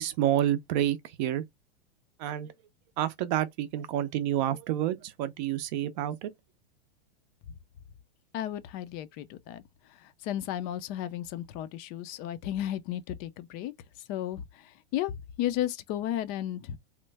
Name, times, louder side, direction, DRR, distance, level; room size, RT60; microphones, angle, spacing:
voice 1, 0.0-1.4 2.2-2.5 3.0-6.3, right 11 dB, 45° right, 0.5 m, -29 dB
voice 2, 8.3-9.6 10.0-13.7 14.1-15.1 15.4-16.8, left 12 dB, 30° left, 0.4 m, -34 dB
3.1 x 2.1 x 3.3 m
hypercardioid pair, 130°, 32 cm